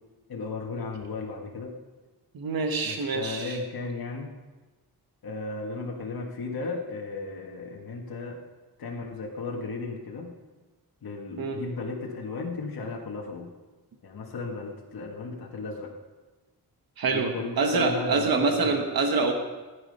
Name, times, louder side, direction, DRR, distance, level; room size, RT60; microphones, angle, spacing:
voice 1, 0.3-1.7 2.8-4.3 5.2-8.4 8.8-10.3 11.0-13.5 14.0-15.9 17.1-18.9, left 3 dB, 65° left, -1 dB, 1.9 m, -35 dB
voice 2, 2.3-3.6 11.4-11.6 17.0-19.3, right 4 dB, 65° right, 4 dB, 1.4 m, -26 dB
16.0 x 10.0 x 5.5 m, 1.2 s
wide cardioid pair, 155°, 39 cm